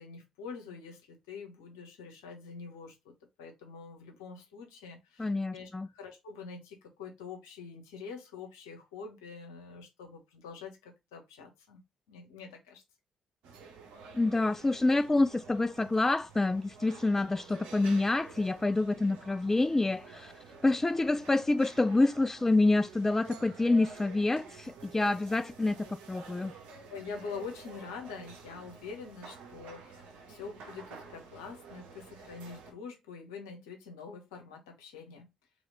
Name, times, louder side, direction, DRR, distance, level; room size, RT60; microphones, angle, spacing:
voice 1, 0.0-3.1 3.4-11.8 12.1-12.8 26.9-35.3, left 5 dB, 80° left, 1.2 m, -45 dB
voice 2, 5.2-5.9 14.1-20.3 20.6-26.5, left 2 dB, 15° left, 0.4 m, -27 dB
sound 1, 13.4-32.7, right 5 dB, 65° right, 1.1 m, -50 dB
3.5 x 3.4 x 3.9 m
hypercardioid pair, 45°, 2 cm